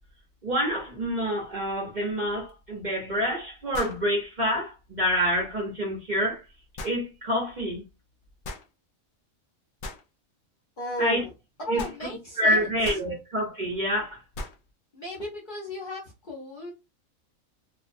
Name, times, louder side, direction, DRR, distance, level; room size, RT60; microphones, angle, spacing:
voice 1, 0.4-6.4 6.8-7.8 11.0-11.2 11.7-11.8 12.4-14.2, equal, 40° right, 0.7 m, -27 dB
sound 1, 2.5-2.6 3.7-4.1 6.8-7.0 8.4-8.7 9.8-10.0 11.8-12.0 12.8-13.1 14.3-14.6, left 2 dB, 70° left, 0.4 m, -37 dB
voice 2, 10.8-11.3 11.6-13.0 14.9-16.7, left 1 dB, 45° left, 0.8 m, -35 dB
2.5 x 2.2 x 2.5 m
omnidirectional pair, 1.4 m